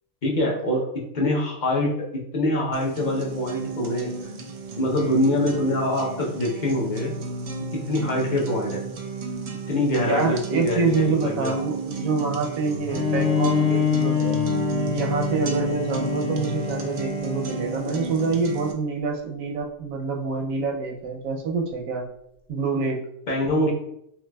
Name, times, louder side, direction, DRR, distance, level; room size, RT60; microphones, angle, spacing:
voice 1, 0.2-0.9 1.1-1.9 2.3-4.1 4.8-7.1 7.9-8.8 9.7-11.5 23.3-23.7, left 1 dB, 40° left, -2 dB, 0.8 m, -24 dB
sound 1, 2.7-18.7, right 3 dB, 65° right, 0.7 m, -32 dB
voice 2, 10.0-14.4 14.9-22.1 22.5-23.0, right 4 dB, 85° right, 2 dB, 1.1 m, -26 dB
Bowed string instrument, 12.9-18.5, left 7 dB, 5° left, 0.6 m, -26 dB
5.7 x 2.4 x 2.2 m, 0.78 s
omnidirectional pair, 1.4 m